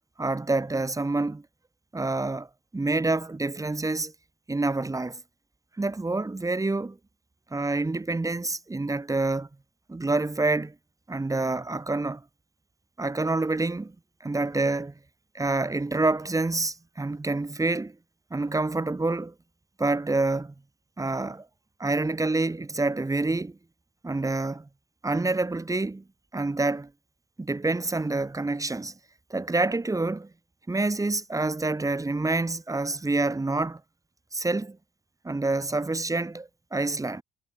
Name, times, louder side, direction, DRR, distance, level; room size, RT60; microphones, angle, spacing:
voice 1, 0.2-1.4 1.9-2.5 2.7-4.1 4.5-5.2 5.8-7.0 7.5-9.5 9.9-10.7 11.1-12.2 13.0-13.9 14.2-14.9 15.3-17.9 18.3-19.3 19.8-20.5 21.0-21.5 21.8-23.6 24.0-24.7 25.0-26.0 26.3-26.9 27.4-28.9 29.3-30.3 30.7-33.8 34.3-34.8 35.2-37.2, right 2 dB, 15° right, 1.7 m, -27 dB
cardioid pair, 90°, 20 cm